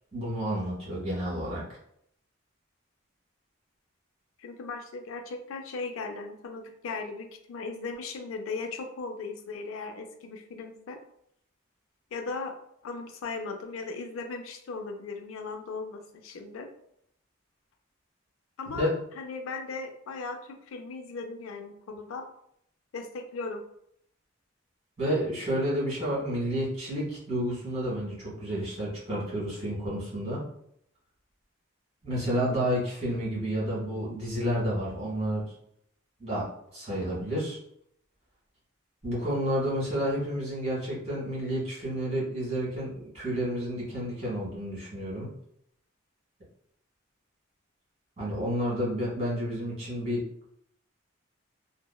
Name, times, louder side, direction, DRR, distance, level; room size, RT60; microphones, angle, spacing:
voice 1, 0.1-1.6 18.7-18.9 25.0-30.4 32.0-35.4 36.2-36.4 36.7-37.6 39.0-45.3 48.2-50.2, equal, 35° right, -7 dB, 1.4 m, -30 dB
voice 2, 4.4-11.0 12.1-12.5 12.8-16.7 18.6-22.3 22.9-23.6, left 4 dB, 85° left, 5 dB, 0.4 m, -37 dB
2.9 x 2.0 x 2.2 m, 0.71 s
head